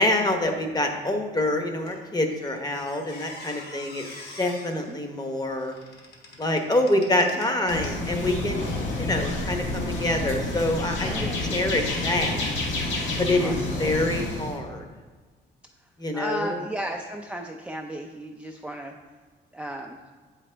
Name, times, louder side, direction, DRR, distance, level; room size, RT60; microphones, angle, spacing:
voice 1, 0.0-4.0 4.4-5.7 6.4-8.7 9.0-12.5 13.2-13.5 13.8-14.8 16.0-16.5, left 1 dB, 20° left, 4 dB, 1.0 m, -26 dB
Squeak, 1.9-8.0 8.6-8.8, left 2 dB, 55° left, 1.6 m, -46 dB
sound 1, 7.7-14.6, left 2 dB, 70° left, 1.4 m, -29 dB
voice 2, 11.0-11.6 13.4-13.8 15.8-18.9 19.5-20.0, equal, 5° right, 1 dB, 0.5 m, -35 dB
7.5 x 5.0 x 3.3 m, 1.4 s
cardioid pair, 90°, 20 cm